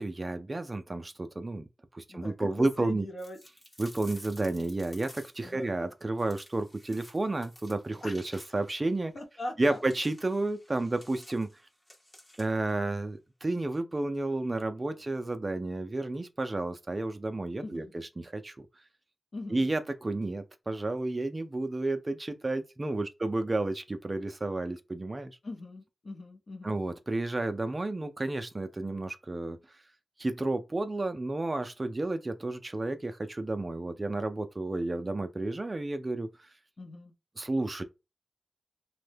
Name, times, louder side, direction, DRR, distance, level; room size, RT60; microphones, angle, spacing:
voice 1, 0.0-1.6 1.9-3.0 3.8-9.1 9.6-11.5 12.4-18.7 19.5-25.4 26.6-29.6 30.2-36.3 37.4-37.8, right 2 dB, 30° right, 0.3 m, -31 dB
voice 2, 2.1-3.4 5.4-5.7 8.0-8.3 9.1-9.8 14.5-14.7 17.6-17.9 19.3-19.7 25.4-26.8 36.8-37.1, left 2 dB, 60° left, 0.6 m, -41 dB
sound 1, 3.2-5.6 6.2-8.8 9.7-12.7, left 1 dB, 20° left, 0.7 m, -53 dB
2.7 x 2.1 x 3.3 m
wide cardioid pair, 80°, 0 cm